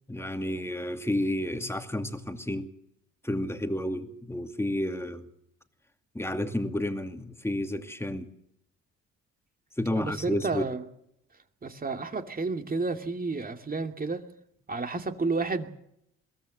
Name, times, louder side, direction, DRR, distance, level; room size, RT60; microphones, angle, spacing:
voice 1, 0.1-2.7 3.2-5.3 6.1-8.3 9.8-10.6, left 1 dB, 10° left, 2.4 m, -31 dB
voice 2, 10.0-10.8 11.6-14.2 14.7-15.7, right 3 dB, 30° right, 2.5 m, -31 dB
22.5 x 17.0 x 8.0 m
cardioid pair, 90°, 30 cm